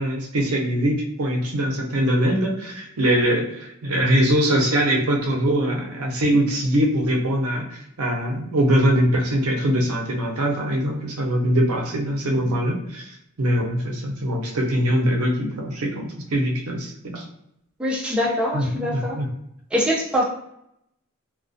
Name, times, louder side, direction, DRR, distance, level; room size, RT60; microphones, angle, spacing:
voice 1, 0.0-17.3 18.5-19.3, equal, 75° right, 1 dB, 0.6 m, -22 dB
voice 2, 17.8-19.2 19.7-20.2, equal, 5° right, -5 dB, 0.4 m, -23 dB
2.3 x 2.1 x 2.5 m, 0.77 s
head